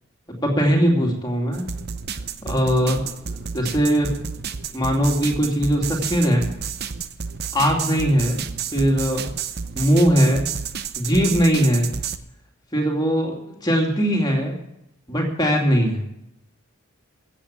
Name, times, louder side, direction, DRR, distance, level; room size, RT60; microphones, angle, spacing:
voice 1, 0.4-1.7 2.4-4.1 4.7-6.5 7.5-8.4 8.7-9.3 9.7-10.5 11.0-11.9 12.7-14.6 15.1-16.0, equal, 20° left, 0 dB, 2.6 m, -20 dB
sound 1, 1.5-12.2, right 6 dB, 45° right, 0.7 m, -31 dB
15.0 x 8.3 x 8.6 m, 0.82 s
head